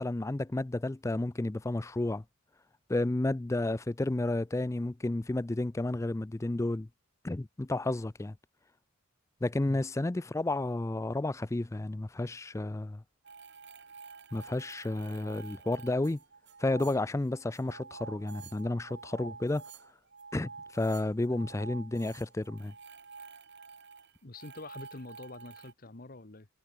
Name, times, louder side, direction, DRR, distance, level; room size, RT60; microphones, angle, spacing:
voice 1, 0.0-2.2 2.9-6.9 7.2-8.3 9.4-13.0 14.3-16.2 16.6-19.6 20.3-22.7, left 2 dB, 15° left, 0.4 m, -31 dB
sound 1, 13.2-25.7, right 5 dB, 55° right, 2.3 m, -49 dB
voice 2, 24.2-26.5, left 2 dB, 40° left, 1.4 m, -46 dB
head